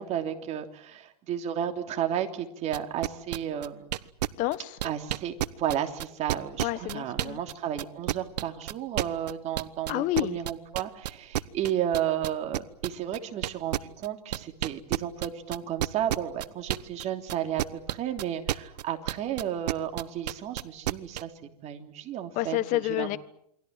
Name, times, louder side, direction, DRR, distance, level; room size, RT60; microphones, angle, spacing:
voice 1, 0.0-3.9 4.8-21.3 21.6-23.1, right 10 dB, 30° right, 5 dB, 3.2 m, -33 dB
sound 1, 2.7-7.5 7.8-17.0 17.3-21.2, right 13 dB, 75° right, 1.1 m, -30 dB
voice 2, 4.4-4.7 6.6-7.4 9.9-10.4 22.3-23.2, left 16 dB, 40° left, 16 dB, 1.4 m, -29 dB
28.5 x 23.0 x 7.6 m, 0.73 s
hypercardioid pair, 135°, 21 cm